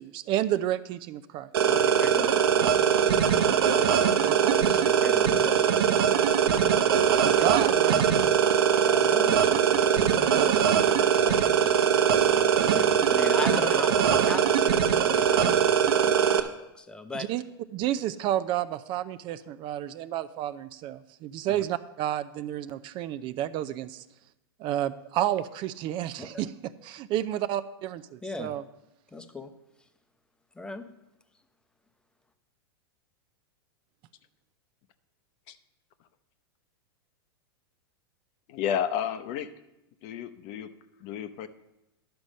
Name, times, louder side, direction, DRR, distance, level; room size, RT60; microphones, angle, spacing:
voice 1, 0.0-1.8 4.2-4.8 7.2-8.0 10.2-10.8 17.1-17.4 17.7-24.0 24.6-26.5 26.8-28.6, right 12 dB, 40° right, 14 dB, 0.5 m, -31 dB
sound 1, 1.5-16.4, right 8 dB, 70° right, 0.9 m, -22 dB
voice 2, 1.6-2.8 4.8-5.6 8.8-9.6 11.1-12.0 12.3-15.6 16.0-17.3 26.2-26.5 28.2-28.5 29.1-29.5 30.6-30.9, left 2 dB, 5° left, 9 dB, 0.8 m, -38 dB
voice 3, 38.5-39.5 40.0-40.7 41.0-41.5, left 9 dB, 50° left, 12 dB, 0.8 m, -31 dB
11.5 x 6.1 x 5.3 m, 0.92 s
hypercardioid pair, 110°, 13 cm